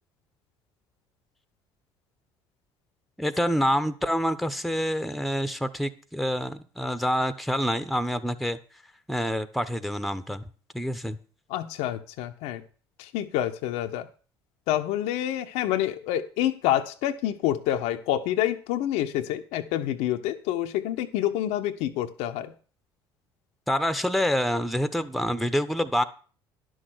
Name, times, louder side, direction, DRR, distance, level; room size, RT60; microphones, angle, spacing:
voice 1, 3.2-8.6 9.1-10.4 10.7-11.2 23.7-26.0, equal, ahead, 13 dB, 1.0 m, -27 dB
voice 2, 11.5-12.6 13.0-14.1 14.7-22.5, left 12 dB, 60° left, 8 dB, 0.8 m, -27 dB
11.5 x 6.4 x 6.4 m, 0.39 s
figure-of-eight pair, 55°, 13 cm